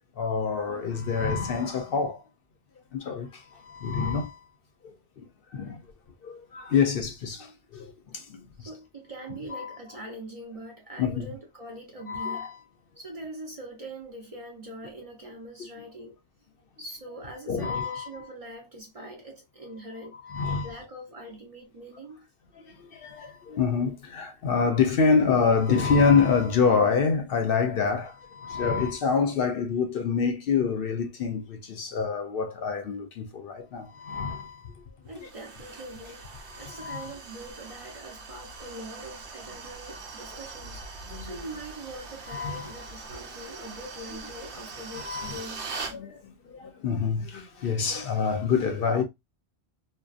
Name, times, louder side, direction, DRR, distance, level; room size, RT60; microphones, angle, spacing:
voice 1, 0.2-2.2 2.9-4.4 4.8-5.3 5.5-5.8 6.2-8.4 9.5-9.8 11.0-11.2 12.1-12.6 17.5-18.2 20.2-20.7 22.7-34.7 35.2-35.3 36.7-37.1 41.1-41.4 42.3-42.7 45.0-45.4 45.9-49.0, left 5 dB, 65° left, 0.7 m, -26 dB
voice 2, 8.6-12.5 13.0-16.2 16.8-22.3 35.0-36.3 36.6-45.6, right 1 dB, 40° right, 0.7 m, -43 dB
sound 1, 35.1-46.0, right 4 dB, 80° right, 0.9 m, -42 dB
2.6 x 2.2 x 2.3 m
omnidirectional pair, 1.1 m